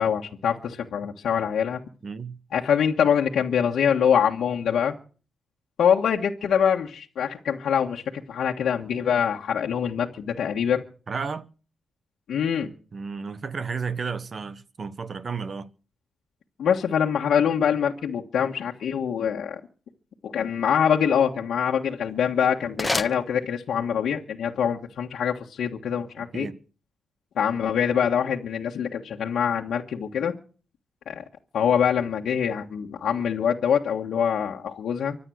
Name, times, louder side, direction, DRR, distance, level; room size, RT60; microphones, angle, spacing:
voice 1, 0.0-1.8 2.5-4.9 5.8-8.0 8.3-10.8 12.3-12.7 16.6-19.6 20.2-26.5 27.4-30.3 31.1-31.2 31.5-35.2, left 8 dB, 75° left, 1.5 m, -24 dB
voice 2, 2.0-2.4 11.1-11.5 12.9-15.7 26.3-26.5, right 5 dB, 45° right, 1.2 m, -32 dB
sound 1, 21.9-24.0, left 2 dB, 15° left, 1.2 m, -32 dB
24.5 x 8.7 x 6.4 m
cardioid pair, 85°, 0 cm